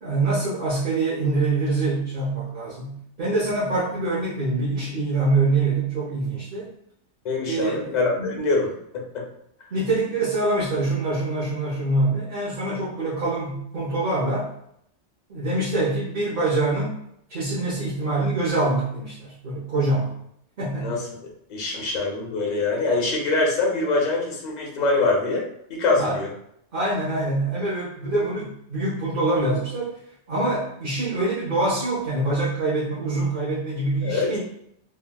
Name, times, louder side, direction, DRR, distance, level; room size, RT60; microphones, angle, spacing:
voice 1, 0.0-6.7 7.5-8.3 9.7-14.5 15.3-17.0 17.3-20.2 20.6-20.9 21.7-21.8 26.0-26.2 26.7-30.0 30.3-34.4, right 2 dB, 50° right, -9 dB, 1.0 m, -25 dB
voice 2, 7.2-9.3 20.8-26.3 34.0-34.3, left 3 dB, 45° left, -2 dB, 0.7 m, -24 dB
3.5 x 2.3 x 2.2 m, 0.73 s
omnidirectional pair, 1.2 m